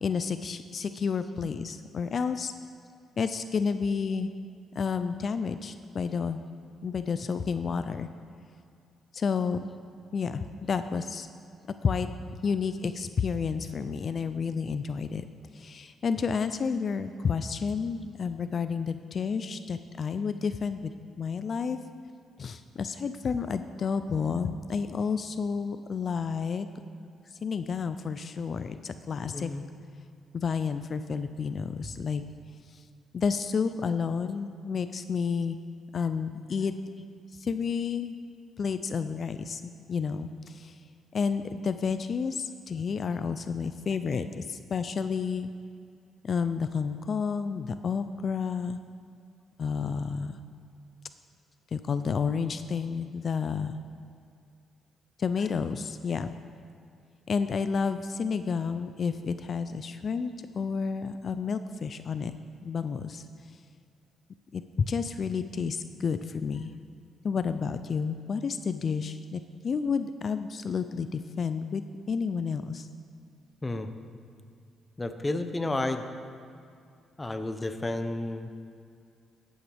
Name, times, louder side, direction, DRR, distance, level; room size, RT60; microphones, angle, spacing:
voice 1, 0.0-2.5 3.2-4.3 4.7-6.4 6.8-8.1 9.1-9.6 10.1-11.3 11.8-12.1 12.4-15.2 15.5-21.8 22.4-26.7 27.4-29.5 30.3-32.2 33.1-35.6 35.9-36.7 37.4-38.1 38.6-40.7 41.1-45.5 46.3-48.8 49.6-50.3 51.7-53.8 55.2-56.3 57.3-62.3 62.6-63.2 64.5-66.7 67.2-71.8 72.1-72.9, left 5 dB, 45° left, 10 dB, 0.4 m, -30 dB
voice 2, 29.3-29.6 31.8-31.9 73.6-73.9 75.0-76.0 77.2-78.5, left 2 dB, 20° left, 8 dB, 0.7 m, -31 dB
14.5 x 8.7 x 3.5 m, 2.4 s
cardioid pair, 90°, 0 cm